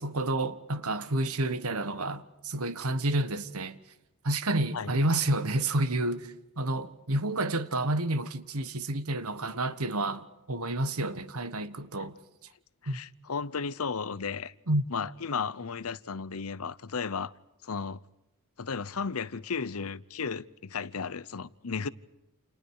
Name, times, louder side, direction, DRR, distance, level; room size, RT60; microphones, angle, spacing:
voice 1, 0.0-3.8 4.2-12.1 12.9-13.0 14.7-14.8, right 2 dB, 75° right, 1.4 m, -30 dB
voice 2, 12.8-14.5 14.9-17.3 17.6-18.0 18.6-21.9, left 5 dB, 70° left, 0.8 m, -34 dB
29.5 x 29.0 x 4.8 m
head